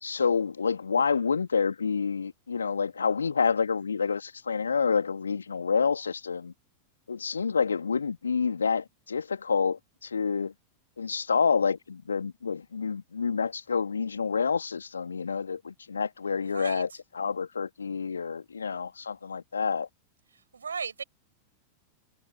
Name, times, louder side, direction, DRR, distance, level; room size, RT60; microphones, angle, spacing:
voice 1, 0.0-6.5 7.1-10.5 11.0-16.9 17.1-19.9, left 5 dB, 75° left, 2.2 m, -28 dB
voice 2, 16.4-16.8 20.5-21.0, right 6 dB, 75° right, 6.7 m, -36 dB
figure-of-eight pair, 90°, 0 cm